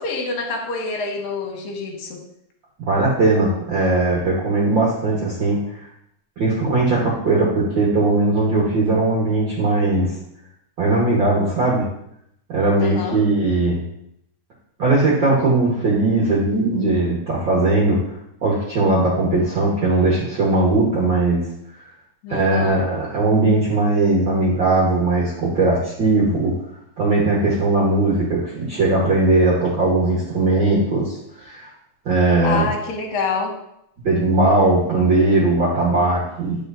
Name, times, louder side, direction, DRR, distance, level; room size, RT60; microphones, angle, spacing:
voice 1, 0.0-2.2 12.8-13.2 22.2-22.8 32.4-33.5, left 4 dB, 75° left, 1 dB, 2.7 m, -26 dB
voice 2, 2.8-5.6 6.4-10.1 10.8-11.8 12.5-13.8 14.8-18.0 18.4-21.4 22.3-26.5 27.0-31.7 32.0-32.7 34.0-36.6, right 2 dB, 55° right, -6 dB, 1.3 m, -19 dB
9.7 x 5.0 x 2.6 m, 0.75 s
omnidirectional pair, 4.2 m